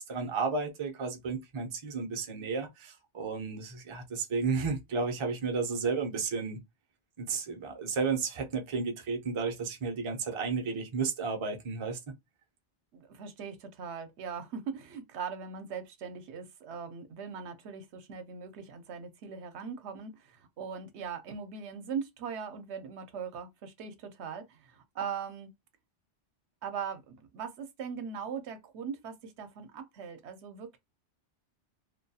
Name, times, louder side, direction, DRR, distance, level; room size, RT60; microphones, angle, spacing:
voice 1, 0.0-6.6 7.2-12.0, right 4 dB, 40° right, 0.5 m, -33 dB
voice 2, 12.9-25.5 26.6-30.8, right 6 dB, 75° right, 0.8 m, -40 dB
2.3 x 2.2 x 2.6 m
omnidirectional pair, 1.2 m